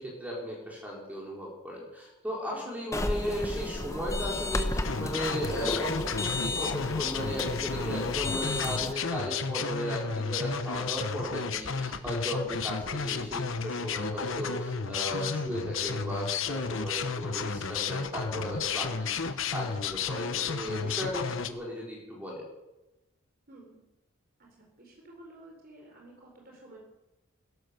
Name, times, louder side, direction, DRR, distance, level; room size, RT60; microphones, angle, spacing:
voice 1, 0.0-22.4, equal, 5° right, -4 dB, 4.4 m, -36 dB
voice 2, 2.5-2.9 11.4-11.6 23.5-23.8 24.6-26.8, right 1 dB, 45° right, -1 dB, 4.0 m, -52 dB
sound 1, 2.9-8.9, left 2 dB, 15° left, 0.9 m, -33 dB
sound 2, 4.8-21.5, left 5 dB, 65° left, 1.1 m, -32 dB
16.5 x 13.0 x 6.8 m, 0.98 s
head